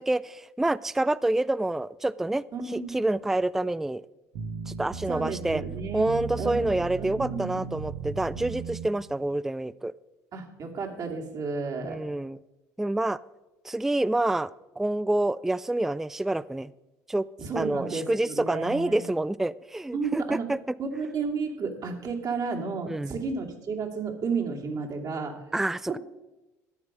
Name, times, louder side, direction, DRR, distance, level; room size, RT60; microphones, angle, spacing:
voice 1, 0.0-2.4 2.7-4.0 4.7-5.6 5.9-9.9 11.8-12.4 12.8-13.2 13.6-14.5 14.8-16.7 17.1-17.3 17.6-20.6 22.9-23.1 25.5-26.0, right 2 dB, 5° right, 20 dB, 0.3 m, -27 dB
voice 2, 2.5-3.0 5.1-7.6 10.3-12.1 17.4-19.0 19.9-20.5 20.8-25.4 25.9-26.0, right 4 dB, 50° right, 0 dB, 2.6 m, -32 dB
sound 1, 4.3-8.9, right 6 dB, 65° right, 1.4 m, -36 dB
14.0 x 9.5 x 5.0 m, 1.0 s
hypercardioid pair, 65°, 8 cm